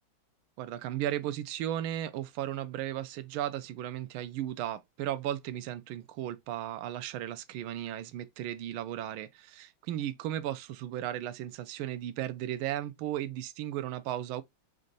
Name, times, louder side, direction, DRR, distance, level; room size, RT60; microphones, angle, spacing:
voice 1, 0.6-14.4, right 12 dB, 75° right, 1.4 m, -35 dB
5.3 x 2.6 x 3.9 m
omnidirectional pair, 2.4 m